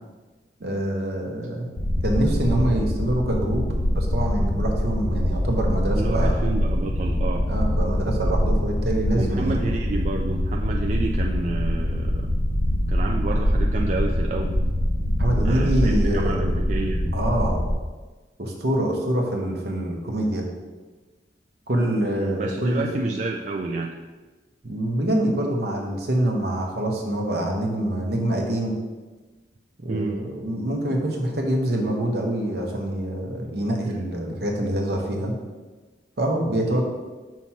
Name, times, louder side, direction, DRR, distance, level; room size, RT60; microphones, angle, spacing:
voice 1, 0.6-1.7 2.0-6.4 7.5-9.7 15.2-16.4 17.1-17.6 18.4-20.5 21.7-22.9 24.6-28.8 29.8-35.3 36.2-36.8, right 1 dB, 65° right, 0 dB, 1.0 m, -25 dB
sound 1, 1.8-17.7, equal, 50° left, 0.7 m, -24 dB
voice 2, 5.9-7.5 9.1-12.3 12.9-14.7 15.3-17.1 22.1-23.9 24.7-24.8 29.9-30.2 36.6-36.8, right 3 dB, 45° right, 0 dB, 0.4 m, -29 dB
5.8 x 3.1 x 5.6 m, 1.3 s
head